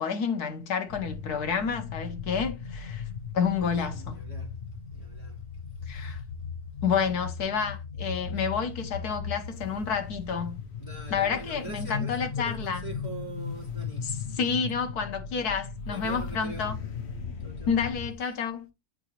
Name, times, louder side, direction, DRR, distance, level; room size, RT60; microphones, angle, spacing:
voice 1, 0.0-3.0 3.3-4.2 5.9-6.2 6.8-10.6 11.1-12.8 14.4-16.7 17.7-18.7, left 6 dB, 55° left, 1.4 m, -29 dB
sound 1, 0.9-18.1, left 6 dB, 80° left, 0.6 m, -37 dB
voice 2, 3.9-4.5 4.9-5.4 5.9-6.1 10.8-14.1 15.9-16.7 17.4-17.8 18.2-18.3, right 3 dB, 15° left, 3.0 m, -43 dB
8.8 x 3.9 x 2.9 m
omnidirectional pair, 2.1 m